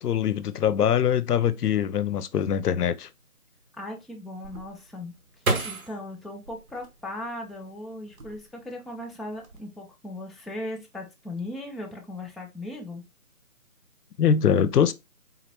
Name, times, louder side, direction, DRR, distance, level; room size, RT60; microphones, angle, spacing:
voice 1, 0.0-3.1 14.2-14.9, left 8 dB, 90° left, 0.5 m, -23 dB
voice 2, 3.7-5.1 5.6-13.0, left 1 dB, ahead, 0.4 m, -38 dB
sound 1, 4.4-7.5 8.0-8.8 9.1-9.6, right 2 dB, 65° right, 0.9 m, -32 dB
3.7 x 2.1 x 2.9 m
figure-of-eight pair, 175°, 45 cm